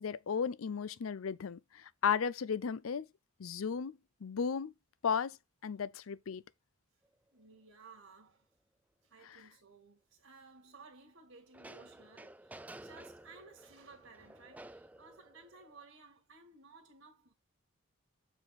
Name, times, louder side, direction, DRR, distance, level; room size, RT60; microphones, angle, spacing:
voice 1, 0.0-3.1 3.4-4.7 5.0-5.4 5.6-6.4 9.2-9.4, left 6 dB, 75° left, 0.5 m, -35 dB
sound 1, 7.1-7.2 11.5-15.8, right 1 dB, 5° right, 0.3 m, -53 dB
voice 2, 7.3-8.5 9.0-17.3, right 4 dB, 65° right, 2.0 m, -57 dB
7.8 x 4.5 x 4.1 m
head